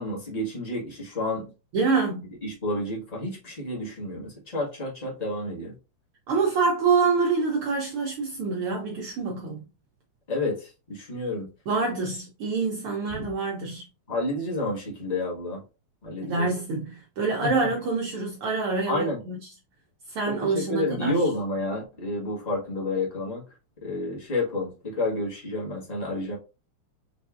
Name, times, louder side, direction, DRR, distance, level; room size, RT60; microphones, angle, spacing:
voice 1, 0.0-1.4 2.4-5.7 10.3-11.5 14.1-15.6 16.0-16.5 18.9-19.2 20.4-23.4 23.8-26.4, left 2 dB, 35° left, 0.6 m, -30 dB
voice 2, 1.7-2.3 6.3-9.6 11.7-13.8 16.2-19.5 20.1-21.3, right 4 dB, 85° right, 1.2 m, -26 dB
5.2 x 3.4 x 2.4 m
omnidirectional pair, 3.4 m